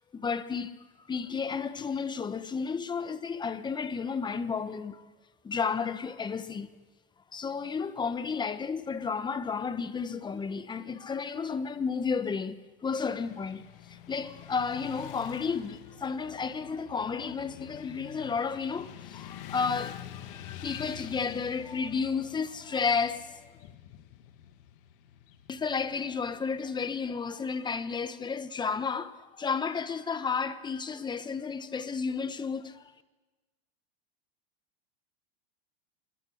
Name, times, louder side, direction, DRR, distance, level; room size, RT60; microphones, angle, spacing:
voice 1, 0.1-0.8 1.1-5.0 5.4-6.7 7.3-12.6 12.8-13.6 13.9-23.5 25.5-32.9, left 5 dB, 15° left, 1.2 m, -32 dB
Motorcycle / Traffic noise roadway noise, 12.9-27.0, left 11 dB, 65° left, 2.0 m, -47 dB
26.5 x 21.5 x 6.5 m
supercardioid pair, 130°, 30 cm